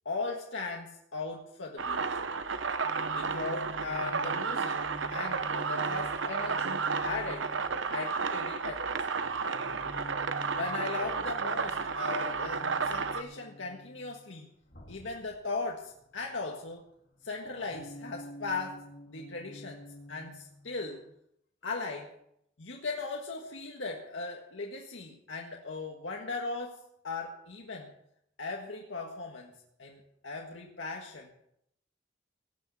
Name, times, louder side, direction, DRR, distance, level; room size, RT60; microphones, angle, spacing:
voice 1, 0.1-2.1 3.1-4.8 5.1-7.5 7.9-9.3 10.5-14.5 14.9-16.9 17.2-21.0 21.6-22.1 22.6-27.9 28.4-29.5 29.8-31.3, left 3 dB, 90° left, 0 dB, 1.6 m, -38 dB
sound 1, 1.8-13.2, right 5 dB, 80° right, 0.9 m, -32 dB
sound 2, 2.8-8.0 9.1-14.2 14.6-16.7 17.0-21.1, equal, 55° left, 3.1 m, -49 dB
18.0 x 6.4 x 8.6 m, 0.76 s
head